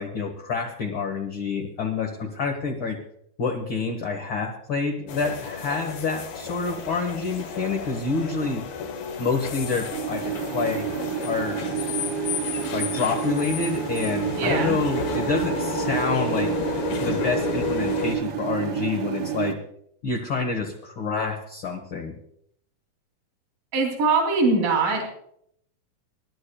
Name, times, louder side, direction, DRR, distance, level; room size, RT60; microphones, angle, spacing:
voice 1, 0.0-3.0 3.4-8.6 9.2-10.9 11.2-11.8 12.6-16.5 17.0-19.6 20.0-22.1, left 4 dB, 60° left, 1 dB, 1.3 m, -28 dB
sound 1, 5.1-18.2, left 5 dB, 90° left, 3.4 m, -32 dB
sound 2, 9.9-19.5, right 10 dB, 50° right, 1.8 m, -29 dB
voice 2, 14.3-14.8 23.7-25.0, right 3 dB, 75° right, 2 dB, 4.7 m, -22 dB
27.0 x 11.5 x 2.3 m, 0.69 s
omnidirectional pair, 4.1 m